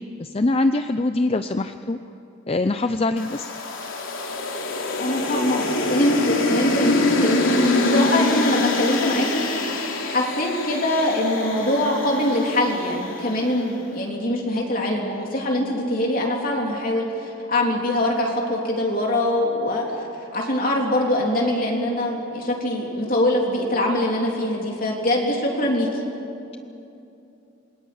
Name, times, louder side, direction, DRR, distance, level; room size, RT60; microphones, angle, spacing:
voice 1, 0.2-2.0 2.5-3.6, left 2 dB, 30° left, 9 dB, 0.5 m, -23 dB
sound 1, 3.2-13.5, left 2 dB, 75° left, 3.2 m, -24 dB
voice 2, 5.0-9.7 10.0-20.0 20.3-25.9, left 1 dB, 45° left, -1 dB, 3.3 m, -23 dB
27.0 x 21.5 x 8.6 m, 2.7 s
head